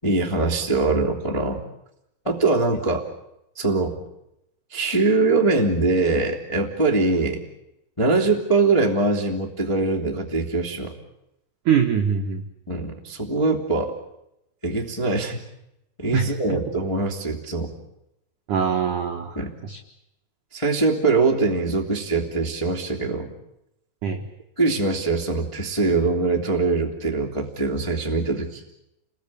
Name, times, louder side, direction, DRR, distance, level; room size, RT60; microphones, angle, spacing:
voice 1, 0.0-1.6 2.2-3.0 3.5-3.9 4.7-7.4 8.0-10.9 12.7-13.9 14.6-15.4 16.0-17.7 19.3-19.5 20.5-23.3 24.6-28.6, right 3 dB, 25° left, -2 dB, 0.7 m, -22 dB
voice 2, 11.7-12.4 16.1-16.3 18.5-19.3 19.6-19.8 24.0-24.2, right 7 dB, 75° right, 3 dB, 1.8 m, -22 dB
29.5 x 21.0 x 8.6 m, 0.85 s
omnidirectional pair, 5.9 m